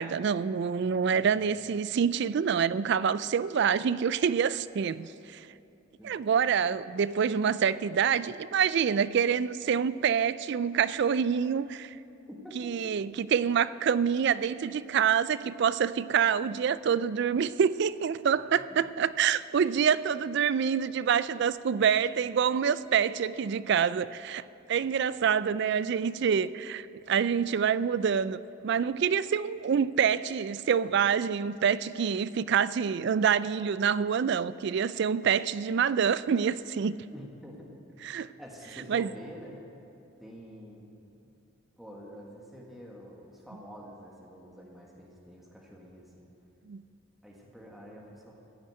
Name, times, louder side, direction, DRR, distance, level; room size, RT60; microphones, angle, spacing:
voice 1, 0.0-5.5 6.0-12.0 12.6-24.4 24.7-37.0 38.0-38.3 38.9-39.1 46.7-46.8, right 7 dB, 50° right, 17 dB, 0.3 m, -26 dB
voice 2, 12.3-12.7 18.5-18.8 37.1-37.7 38.4-39.6 40.2-41.3 41.8-46.3 47.2-48.3, equal, ahead, -3 dB, 1.6 m, -47 dB
15.5 x 6.4 x 9.0 m, 2.8 s
head